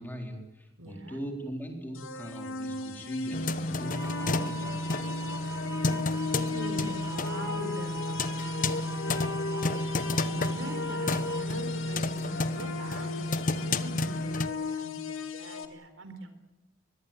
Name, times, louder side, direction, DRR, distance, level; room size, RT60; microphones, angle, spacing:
voice 1, 0.0-5.0, equal, 10° left, 3 dB, 3.9 m, -41 dB
voice 2, 0.8-1.2 6.3-9.6 10.2-16.3, right 1 dB, 75° right, 9 dB, 4.0 m, -43 dB
sound 1, 1.9-15.7, left 4 dB, 80° left, 2.1 m, -37 dB
sound 2, 3.3-14.5, left 2 dB, 45° left, 1.1 m, -31 dB
sound 3, 3.8-11.4, right 5 dB, 15° right, 1.2 m, -42 dB
23.5 x 21.0 x 9.1 m, 0.96 s
head